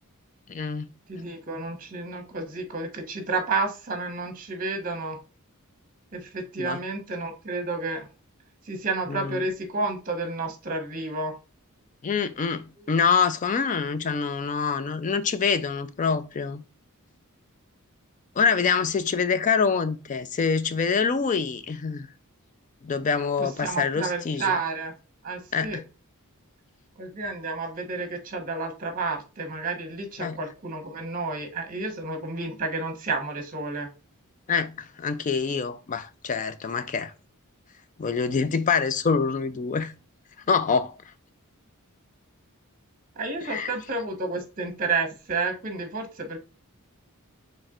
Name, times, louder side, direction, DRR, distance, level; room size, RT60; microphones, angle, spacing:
voice 1, 0.5-0.9 6.6-6.8 9.1-9.4 12.0-16.6 18.4-22.1 22.8-24.6 25.5-25.8 30.2-30.4 34.5-37.1 38.0-39.9 40.5-40.9 43.4-43.7, left 5 dB, 35° left, 0.4 m, -25 dB
voice 2, 1.1-5.2 6.1-8.0 8.7-11.3 12.8-12.9 23.4-24.9 25.2-25.8 27.0-33.9 43.2-46.4, right 3 dB, 40° right, 1.0 m, -31 dB
4.1 x 3.3 x 2.4 m
head